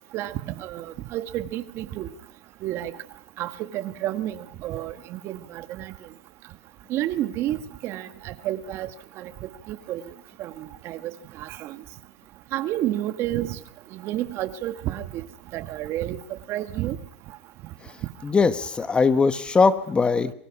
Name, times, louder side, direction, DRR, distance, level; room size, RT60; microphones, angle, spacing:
voice 1, 0.1-2.1 2.6-2.9 3.4-5.9 6.9-8.9 9.2-9.3 9.7-10.0 10.4-11.1 11.4-11.7 12.5-13.6 13.9-15.2 15.5-16.2 16.5-17.0, right 13 dB, 40° right, 1.6 m, -30 dB
voice 2, 18.2-20.3, left 4 dB, 15° left, 1.3 m, -20 dB
27.5 x 24.0 x 6.0 m
supercardioid pair, 140°, 7 cm